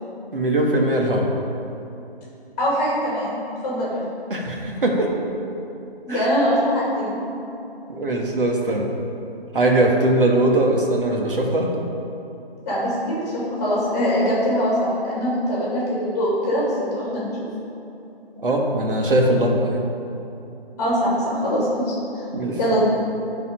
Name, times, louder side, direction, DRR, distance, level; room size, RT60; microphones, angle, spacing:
voice 1, 0.3-1.3 4.3-5.2 6.1-6.3 7.9-8.9 9.5-11.7 18.4-19.8 22.3-22.6, right 1 dB, 60° right, 0 dB, 1.5 m, -20 dB
voice 2, 2.6-3.4 3.6-4.0 6.1-7.2 12.6-17.3 20.8-21.9 22.6-22.8, equal, 15° left, -6 dB, 2.0 m, -22 dB
12.0 x 4.3 x 5.1 m, 2.9 s
figure-of-eight pair, 165°, 31 cm